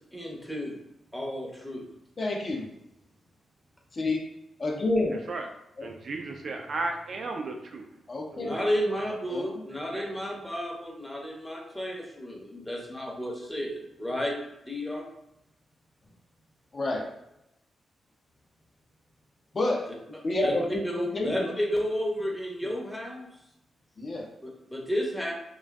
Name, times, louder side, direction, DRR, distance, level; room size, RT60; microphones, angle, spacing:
voice 1, 0.1-0.8 1.1-1.9 8.4-14.4 14.7-15.1 20.4-20.7 20.9-23.3 24.4-25.3, equal, 10° left, 0 dB, 0.7 m, -32 dB
voice 2, 2.2-2.7 3.9-4.3 4.6-5.2 5.8-5.9 8.1-8.5 9.3-9.6 16.7-17.1 19.5-19.9 20.2-21.5 22.6-22.7 24.0-24.3, left 2 dB, 45° left, -1 dB, 0.6 m, -29 dB
voice 3, 5.8-7.9 8.3-8.7 9.9-10.1, right 3 dB, 60° right, 3 dB, 0.3 m, -34 dB
2.5 x 2.2 x 2.2 m, 0.85 s
cardioid pair, 60°, 0 cm